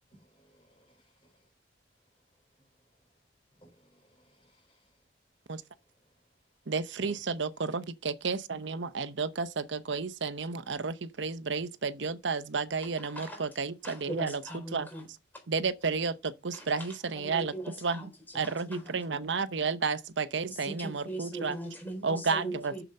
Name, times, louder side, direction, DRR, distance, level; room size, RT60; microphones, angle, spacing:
voice 1, 0.2-1.5 3.5-5.0 7.0-7.2, right 1 dB, 30° left, 4.9 m, -60 dB
voice 2, 6.7-14.4 14.7-14.9 15.5-17.5 17.8-18.0 18.3-21.5 22.0-22.8, right 4 dB, 85° right, 0.8 m, -32 dB
voice 3, 12.8-15.1 15.3-15.4 16.5-19.0 20.5-22.8, right 1 dB, 10° left, 3.9 m, -41 dB
7.6 x 7.0 x 6.6 m
head